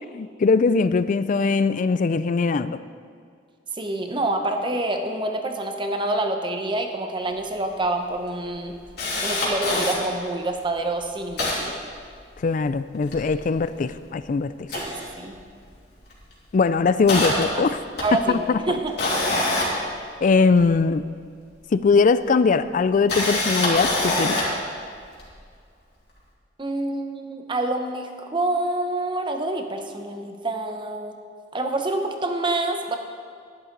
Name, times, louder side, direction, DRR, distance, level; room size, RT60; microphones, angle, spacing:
voice 1, 0.1-2.8 12.4-14.7 16.5-17.8 18.3-18.6 20.2-21.0 21.7-24.4, left 4 dB, 45° left, 14 dB, 0.4 m, -21 dB
voice 2, 3.8-8.7 9.2-11.7 14.7-15.3 17.5-17.6 18.0-18.9 26.6-31.1 31.5-33.0, right 2 dB, 30° right, 5 dB, 0.9 m, -27 dB
Camera, 7.4-7.5 7.7-7.8 8.3-10.0 10.6-10.7 10.9-12.6 12.9-14.1 14.6-15.7 16.0-16.3 16.7-20.7 21.8-21.9 22.8-24.6 25.2-25.3, left 2 dB, 65° left, 2.7 m, -26 dB
11.0 x 10.5 x 3.9 m, 2.1 s
head